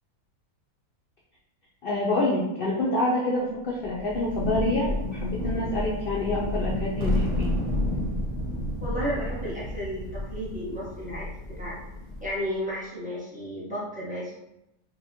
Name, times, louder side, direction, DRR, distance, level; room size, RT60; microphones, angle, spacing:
voice 1, 1.8-7.5, left 1 dB, 80° left, -5 dB, 0.5 m, -27 dB
Thunder / Rain, 3.8-12.4, left 2 dB, 55° left, 0.8 m, -31 dB
sound 1, 7.0-11.7, right 2 dB, 65° right, 0.9 m, -36 dB
voice 2, 8.8-11.3 11.6-11.8 12.2-14.3, equal, 5° right, -9 dB, 0.8 m, -33 dB
2.9 x 2.4 x 2.6 m, 0.88 s
omnidirectional pair, 1.5 m